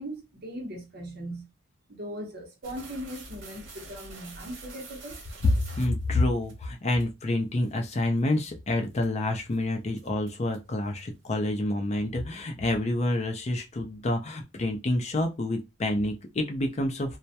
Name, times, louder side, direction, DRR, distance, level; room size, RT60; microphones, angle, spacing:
voice 1, 0.0-1.5 1.9-5.2, equal, 55° right, 0.8 m, -39 dB
sound 1, 2.6-6.5 7.0-7.1 7.7-7.8 8.2-8.5 9.0-9.2 9.5-9.6 10.0-10.7, right 3 dB, 90° right, 0.8 m, -46 dB
voice 2, 5.4-17.2, left 1 dB, 35° left, 0.5 m, -28 dB
2.2 x 2.1 x 2.7 m
head